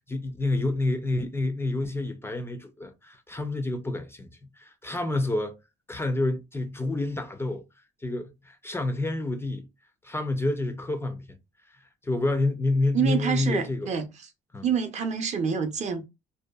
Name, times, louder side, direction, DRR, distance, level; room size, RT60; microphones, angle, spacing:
voice 1, 0.1-5.6 5.9-7.6 8.0-9.7 10.0-11.4 11.7-11.8 12.0-14.0 14.5-14.7, left 2 dB, 15° left, 0.4 m, -28 dB
voice 2, 12.9-14.1 14.6-16.0, right 7 dB, 40° right, 0.6 m, -27 dB
2.6 x 2.2 x 2.2 m
cardioid pair, 110°, 17 cm